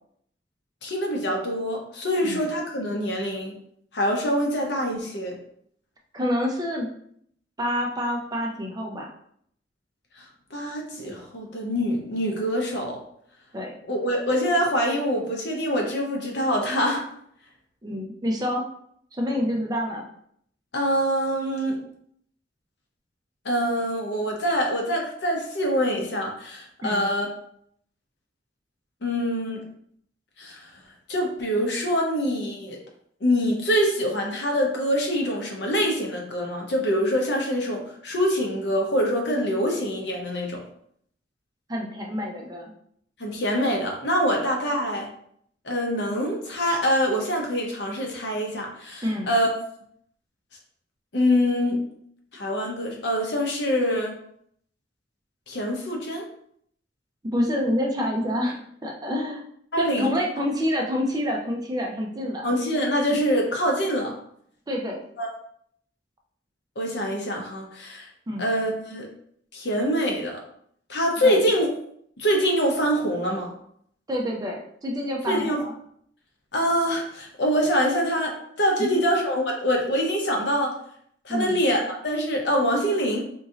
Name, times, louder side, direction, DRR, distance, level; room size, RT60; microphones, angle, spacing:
voice 1, 0.8-3.6 3.9-5.4 10.5-13.0 13.9-17.0 20.7-21.8 23.4-27.3 29.0-29.6 30.4-30.6 31.1-32.8 33.2-40.6 43.2-45.1 45.6-49.5 51.1-51.8 52.3-54.1 55.5-56.3 59.7-60.2 62.4-64.1 65.2-65.3 66.8-68.1 68.4-69.1 69.5-70.4 70.9-71.7 72.2-73.5 75.3-75.6 76.5-80.7 81.2-83.2, equal, 65° left, 0 dB, 0.8 m, -25 dB
voice 2, 6.1-6.9 7.6-9.1 13.5-13.7 17.8-18.6 19.1-20.1 26.8-27.1 41.7-42.7 44.3-44.4 49.0-49.3 57.3-59.4 59.8-62.5 63.1-63.2 64.7-65.0 68.3-68.5 71.2-71.5 74.1-75.7 78.8-79.0 81.3-81.6, equal, 20° right, 1 dB, 0.5 m, -27 dB
3.0 x 2.6 x 3.7 m, 0.67 s
head